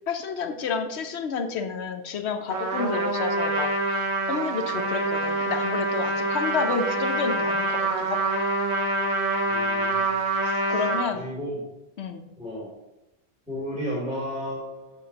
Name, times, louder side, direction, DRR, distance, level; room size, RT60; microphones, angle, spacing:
voice 1, 0.1-8.4 10.7-11.3 12.0-12.2, left 5 dB, 85° left, 6 dB, 1.0 m, -30 dB
Trumpet, 2.5-11.0, right 2 dB, 80° right, 1.3 m, -26 dB
voice 2, 9.5-10.1 10.4-10.8 11.1-11.6 12.4-12.7 13.5-15.1, equal, 5° right, -9 dB, 2.9 m, -34 dB
8.3 x 7.1 x 2.9 m, 0.94 s
omnidirectional pair, 1.1 m